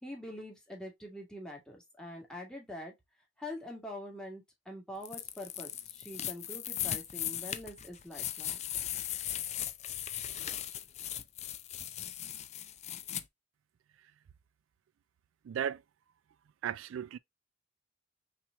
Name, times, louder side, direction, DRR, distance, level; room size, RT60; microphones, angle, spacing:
voice 1, 0.0-2.9 3.4-8.6, left 1 dB, 5° left, 1.7 m, -45 dB
sound 1, 5.0-13.2, left 11 dB, 35° left, 0.4 m, -38 dB
voice 2, 15.4-15.8 16.6-17.2, right 9 dB, 85° right, 0.3 m, -35 dB
5.8 x 3.2 x 2.3 m
head